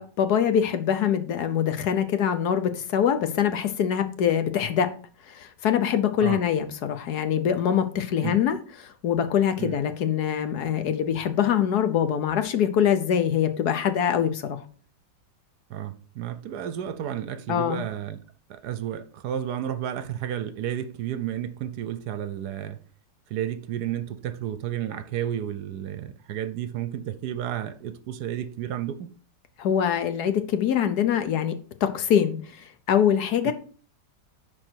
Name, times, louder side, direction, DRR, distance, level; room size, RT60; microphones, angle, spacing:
voice 1, 0.0-4.9 5.3-14.6 17.5-17.8 29.6-31.6 31.8-33.5, left 8 dB, 65° left, 1.3 m, -24 dB
voice 2, 15.7-18.2 18.5-22.8 23.3-29.1 33.4-33.5, right 10 dB, 70° right, 1.1 m, -32 dB
11.0 x 4.4 x 4.5 m
omnidirectional pair, 1.9 m